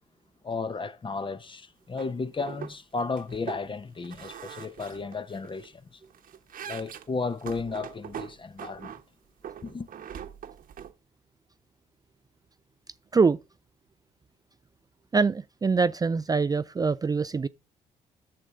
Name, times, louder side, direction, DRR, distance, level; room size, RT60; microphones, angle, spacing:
voice 1, 0.4-6.0 6.6-9.0 9.6-9.9, left 4 dB, 30° left, 0.9 m, -34 dB
sound 1, 2.0-2.1 2.4-2.7 3.0-3.6 4.0-5.7 6.0-9.0 9.4-10.9, right 9 dB, 60° right, 1.1 m, -42 dB
voice 2, 15.1-17.5, right 4 dB, 25° right, 0.4 m, -24 dB
10.5 x 6.8 x 3.6 m
supercardioid pair, 60°, 16 cm